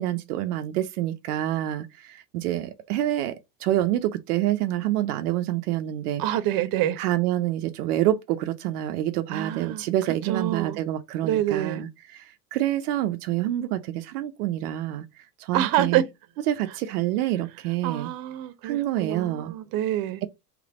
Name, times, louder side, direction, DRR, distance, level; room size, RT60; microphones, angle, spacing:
voice 1, 0.0-6.2 7.0-16.0 16.5-18.1 18.6-19.5, right 13 dB, 80° right, 0.6 m, -27 dB
voice 2, 6.2-7.0 9.3-9.8 10.2-10.8 11.2-11.8 15.5-16.1 17.8-20.2, right 12 dB, 50° right, 0.9 m, -26 dB
3.3 x 3.3 x 4.8 m
hypercardioid pair, 90°, 44 cm